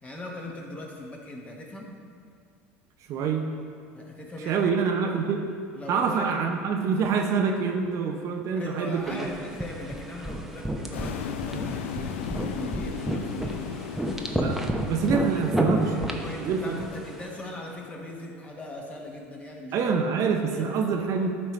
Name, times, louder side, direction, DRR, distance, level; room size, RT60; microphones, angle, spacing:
voice 1, 0.0-2.0 3.9-4.8 5.7-6.4 8.5-13.6 15.1-19.7 20.3-20.7, left 1 dB, 20° left, -1 dB, 1.4 m, -39 dB
voice 2, 3.1-3.5 4.5-5.5 5.9-9.3 14.3-14.6 14.9-16.1 16.4-16.8 19.7-21.4, right 5 dB, 55° right, 4 dB, 0.7 m, -26 dB
sound 1, 9.1-17.3, equal, 5° right, 0.8 m, -31 dB
sound 2, 10.9-17.9, left 9 dB, 80° left, 0.4 m, -37 dB
11.5 x 4.5 x 3.2 m, 2.2 s
hypercardioid pair, 80°, 7 cm